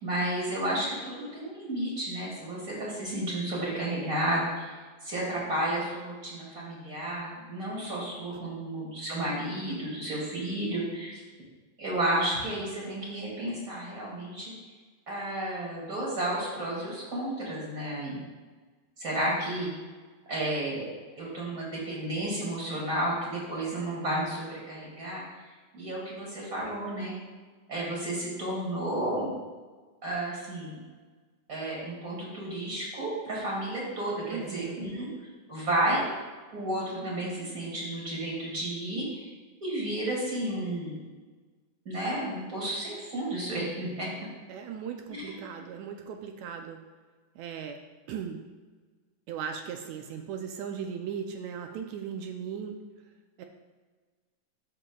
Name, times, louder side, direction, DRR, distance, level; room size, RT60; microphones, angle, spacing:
voice 1, 0.0-4.7 5.0-11.2 11.8-14.5 15.1-18.2 19.0-19.7 20.3-20.9 21.2-25.2 25.7-27.1 27.7-29.3 30.0-30.8 31.5-35.1 35.5-36.0 36.5-39.3 39.6-41.0 41.9-44.1 45.1-45.4, right 1 dB, 30° right, -5 dB, 2.3 m, -32 dB
voice 2, 34.3-34.9 44.5-46.8 47.4-47.8 48.1-48.4 49.3-52.8 53.4-53.5, right 7 dB, 80° right, 4 dB, 1.9 m, -37 dB
12.5 x 5.9 x 2.4 m, 1.3 s
omnidirectional pair, 3.3 m